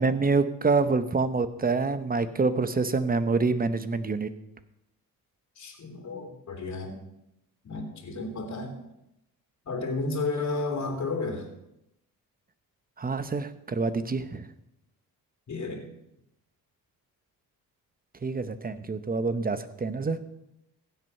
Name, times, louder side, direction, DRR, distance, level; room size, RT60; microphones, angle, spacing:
voice 1, 0.0-4.3 13.0-14.5 18.2-20.2, right 4 dB, 25° right, 12 dB, 1.0 m, -26 dB
voice 2, 5.6-7.0 7.6-8.7 9.6-11.5 15.5-15.9, left 3 dB, 45° left, 2 dB, 3.0 m, -32 dB
15.5 x 7.9 x 5.5 m, 0.82 s
cardioid pair, 100°, 37 cm